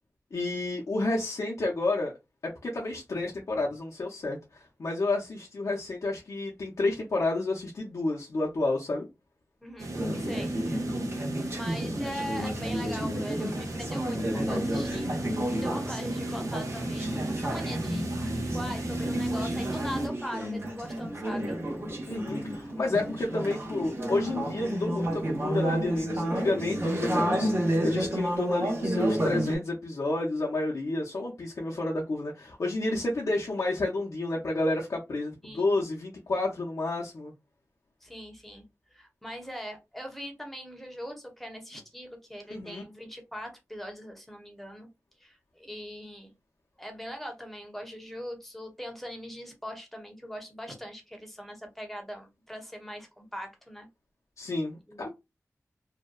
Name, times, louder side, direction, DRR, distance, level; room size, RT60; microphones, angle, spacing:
voice 1, 0.3-2.1 2.6-9.1 22.1-37.3 42.5-42.8 54.4-55.1, left 2 dB, 70° left, 0.6 m, -30 dB
voice 2, 9.6-10.5 11.5-15.1 15.6-21.6 35.4-35.8 38.0-38.6 38.9-44.9 45.2-46.3 46.8-53.9 54.9-55.1, equal, 5° left, 0.8 m, -41 dB
sound 1, 9.8-20.1, right 1 dB, 80° right, 0.7 m, -35 dB
Conversation / Chatter, 9.9-29.6, right 1 dB, 45° right, 0.8 m, -31 dB
2.7 x 2.1 x 2.2 m
wide cardioid pair, 95°, 6 cm